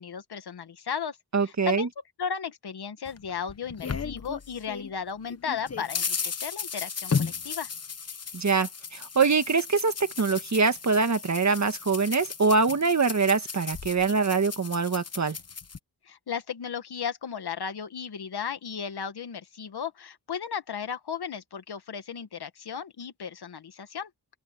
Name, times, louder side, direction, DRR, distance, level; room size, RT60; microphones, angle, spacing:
voice 1, 0.0-1.2 1.4-1.9 2.2-7.7 16.1-24.1, left 7 dB, 90° left, 1.8 m, -35 dB
voice 2, 1.3-1.9 8.3-15.4, right 4 dB, 45° right, 1.7 m, -24 dB
sound 1, 3.1-4.9 5.3-15.8, left 5 dB, 40° left, 1.0 m, -35 dB
open air
wide cardioid pair, 75°, 38 cm